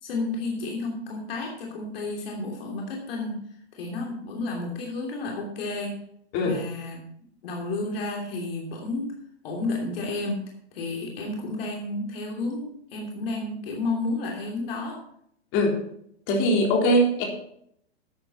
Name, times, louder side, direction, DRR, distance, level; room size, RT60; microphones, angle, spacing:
voice 1, 0.0-3.4 3.7-6.0 6.4-7.0 7.4-9.2 9.4-10.4 10.7-15.0, left 2 dB, 60° left, 0 dB, 3.0 m, -31 dB
voice 2, 16.3-17.2, equal, 40° left, 0 dB, 3.7 m, -21 dB
12.5 x 9.4 x 4.2 m, 0.69 s
hypercardioid pair, 120°, 32 cm